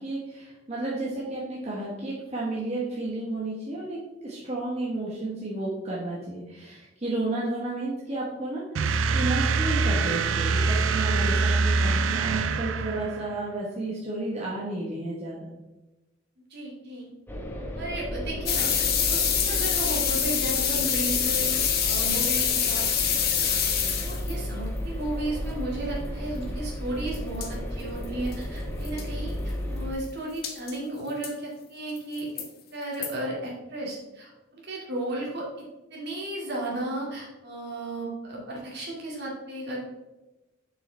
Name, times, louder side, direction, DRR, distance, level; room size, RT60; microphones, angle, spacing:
voice 1, 0.0-15.5, right 2 dB, 35° right, -6 dB, 1.2 m, -32 dB
sound 1, 8.7-13.4, right 4 dB, 80° right, 0.4 m, -24 dB
voice 2, 16.5-17.1 17.7-23.5 24.0-32.4 32.7-39.8, right 1 dB, 55° right, -3 dB, 2.2 m, -34 dB
sound 2, 17.3-29.9, equal, 10° left, 0.9 m, -34 dB
sound 3, 18.5-24.3 27.1-27.2 27.4-27.5 28.0-28.1 28.3-28.4 28.8-29.0 30.4-30.7 31.2-31.3 32.0-32.5 33.0-33.1, left 8 dB, 50° left, 0.9 m, -25 dB
7.1 x 5.5 x 3.3 m, 1.0 s
head